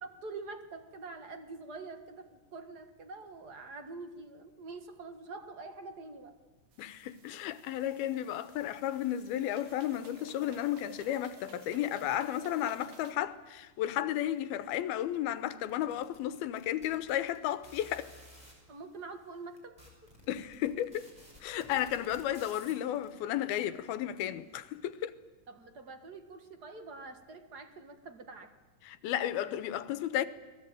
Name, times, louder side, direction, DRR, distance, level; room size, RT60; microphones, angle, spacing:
voice 1, 0.0-6.4 18.7-20.1 25.5-28.5, right 3 dB, 40° right, 1.4 m, -46 dB
sound 1, 6.7-13.1, right 6 dB, 70° right, 3.9 m, -54 dB
voice 2, 6.8-18.1 20.3-21.1 21.4-25.1 28.8-30.3, left 12 dB, 90° left, 3.0 m, -33 dB
sound 2, 15.7-18.5 19.2-19.3 19.6-23.1, left 1 dB, 10° right, 6.8 m, -54 dB
29.5 x 20.5 x 9.1 m
omnidirectional pair, 4.3 m